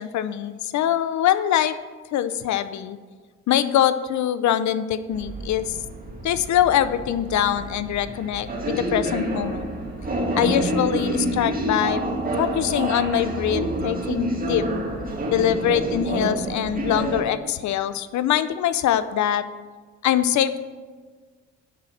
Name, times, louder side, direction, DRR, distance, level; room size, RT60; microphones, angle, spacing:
voice 1, 0.0-1.7 2.1-3.0 3.5-5.8 6.2-9.8 10.3-12.0 12.4-14.6 15.3-19.5 20.0-20.6, left 10 dB, 70° left, 13 dB, 0.6 m, -23 dB
sound 1, 5.1-17.2, right 1 dB, 30° right, 1.8 m, -28 dB
7.5 x 5.7 x 7.6 m, 1.4 s
cardioid pair, 90°, 30 cm